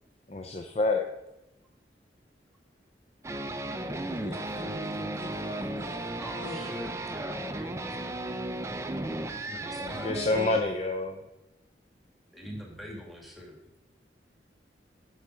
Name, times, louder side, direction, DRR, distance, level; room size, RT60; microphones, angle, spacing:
voice 1, 0.3-1.1 9.8-11.3, left 2 dB, 35° left, 3 dB, 0.5 m, -28 dB
sound 1, 3.2-10.6, right 1 dB, 15° right, 0.4 m, -35 dB
voice 2, 3.9-6.1 6.3-6.7, left 2 dB, 85° left, -3 dB, 2.6 m, -43 dB
voice 3, 6.2-8.8 9.4-10.3 12.3-13.6, equal, ahead, -1 dB, 1.5 m, -44 dB
8.1 x 5.6 x 6.2 m, 0.96 s
head